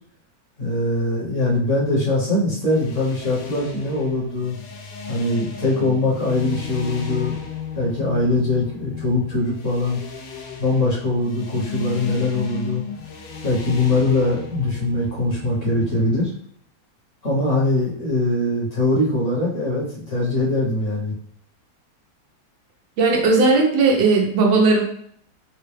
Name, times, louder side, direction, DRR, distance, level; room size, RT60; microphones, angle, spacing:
voice 1, 0.6-4.5 5.1-7.4 7.7-10.0 10.6-12.8 13.4-16.3 17.2-21.2, left 2 dB, 45° left, -6 dB, 1.4 m, -22 dB
sound 1, 2.6-16.2, left 6 dB, 80° left, 1.3 m, -34 dB
voice 2, 23.0-24.8, right 3 dB, 85° right, 0 dB, 1.5 m, -17 dB
4.1 x 2.2 x 3.2 m, 0.64 s
omnidirectional pair, 2.0 m